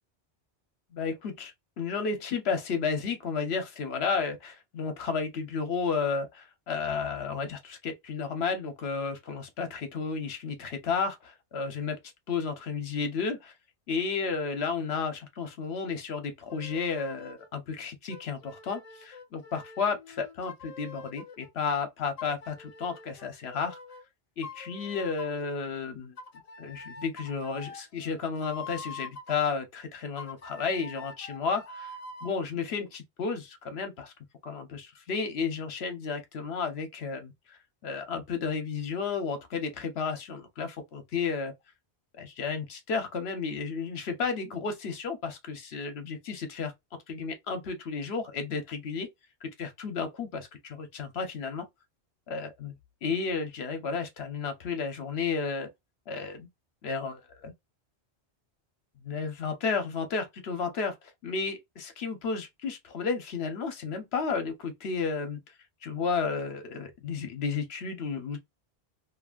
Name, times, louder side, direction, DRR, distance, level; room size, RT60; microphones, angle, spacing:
voice 1, 0.9-12.0 12.3-13.5 13.9-23.8 24.4-26.1 26.6-31.6 32.2-34.1 34.4-41.5 42.2-46.7 47.1-49.1 49.4-51.7 52.3-52.7 53.0-55.7 56.1-56.5 56.8-57.5 59.0-65.4 65.8-68.4, left 5 dB, 65° left, 1.1 m, -32 dB
sound 1, 16.5-17.5 18.1-21.5 22.2-24.0 24.4-25.5 26.2-29.5 30.2-32.4, left 3 dB, 45° left, 0.5 m, -45 dB
2.8 x 2.6 x 2.4 m
omnidirectional pair, 1.1 m